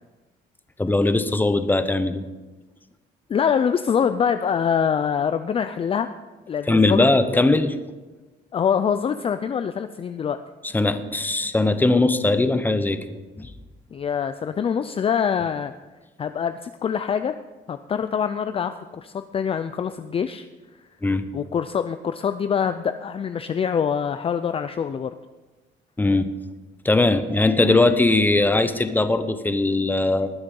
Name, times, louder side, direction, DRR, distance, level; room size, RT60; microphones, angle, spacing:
voice 1, 0.8-2.2 6.7-7.7 10.7-13.5 21.0-21.2 26.0-26.3 26.8-30.3, left 2 dB, 10° left, 10 dB, 0.9 m, -20 dB
voice 2, 3.3-6.1 6.5-7.1 7.3-7.4 8.5-10.4 13.9-15.7 16.2-17.4 17.7-20.5 21.3-25.1, left 7 dB, 30° left, 10 dB, 0.5 m, -24 dB
19.5 x 6.7 x 5.4 m, 1.2 s
cardioid pair, 115°, 19 cm